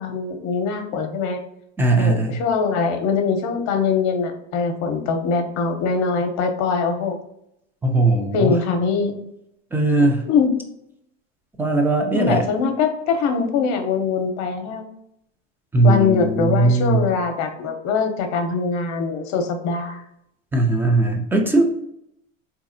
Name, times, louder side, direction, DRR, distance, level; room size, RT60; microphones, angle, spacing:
voice 1, 0.0-1.4 2.0-7.2 8.3-9.2 10.0-10.5 12.1-14.8 15.8-20.0, left 5 dB, 45° left, 6 dB, 0.7 m, -22 dB
voice 2, 1.8-2.4 7.8-8.6 9.7-10.2 11.6-12.5 15.7-17.0 20.5-21.6, right 2 dB, 5° right, 3 dB, 0.3 m, -19 dB
3.9 x 2.8 x 2.6 m, 0.78 s
supercardioid pair, 110°, 38 cm